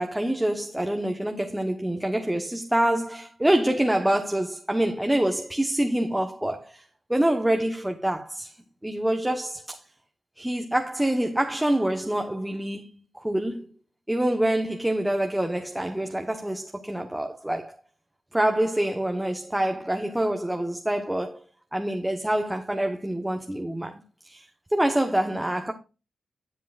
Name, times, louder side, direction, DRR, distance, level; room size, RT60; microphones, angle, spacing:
voice 1, 0.0-6.8 7.1-8.5 8.8-9.8 10.4-13.7 14.1-17.8 18.3-25.7, right 1 dB, 10° right, 1.1 m, -26 dB
11.5 x 7.5 x 2.5 m
cardioid pair, 55°, 0 cm